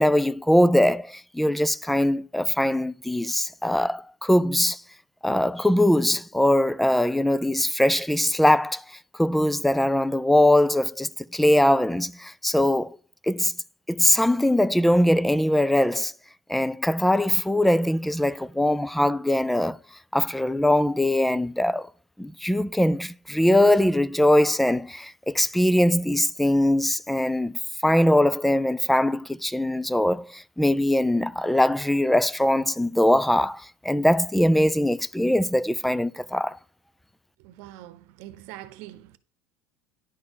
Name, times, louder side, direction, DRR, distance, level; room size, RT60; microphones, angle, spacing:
voice 1, 0.0-4.8 5.2-13.0 13.2-13.5 13.9-16.1 16.5-19.8 20.1-21.9 22.2-36.6, left 1 dB, 5° left, 0.3 m, -22 dB
voice 2, 37.4-39.2, right 14 dB, 65° right, 0.9 m, -43 dB
10.5 x 4.3 x 7.0 m
supercardioid pair, 135°, 5 cm